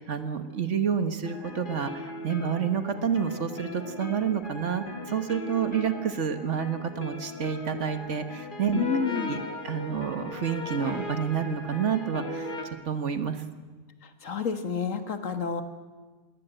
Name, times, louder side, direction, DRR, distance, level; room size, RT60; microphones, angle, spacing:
voice 1, 0.0-12.6 12.8-13.4, right 7 dB, 60° right, 9 dB, 1.6 m, -29 dB
sound 1, 1.2-12.6, left 1 dB, 40° left, 2.0 m, -38 dB
voice 2, 8.7-9.3 14.0-15.6, left 6 dB, 70° left, 9 dB, 1.9 m, -29 dB
20.5 x 18.5 x 9.0 m, 1.4 s
omnidirectional pair, 1.4 m